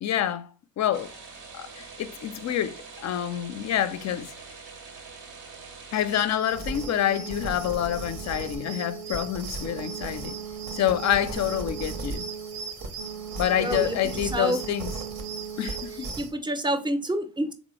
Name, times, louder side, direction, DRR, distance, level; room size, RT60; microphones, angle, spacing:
voice 1, 0.0-0.5 0.8-1.1 1.5-4.3 5.9-10.4 10.7-12.3 13.4-14.9 15.6-16.1, left 10 dB, 45° left, 0.5 m, -27 dB
sound 1, 0.9-6.4, right 5 dB, 75° right, 1.1 m, -44 dB
sound 2, 6.4-16.3, right 4 dB, 60° right, 0.9 m, -35 dB
voice 2, 13.6-14.0 14.3-14.6 16.2-17.5, right 1 dB, 10° right, 0.5 m, -27 dB
3.2 x 2.1 x 3.0 m
hypercardioid pair, 55°, 40 cm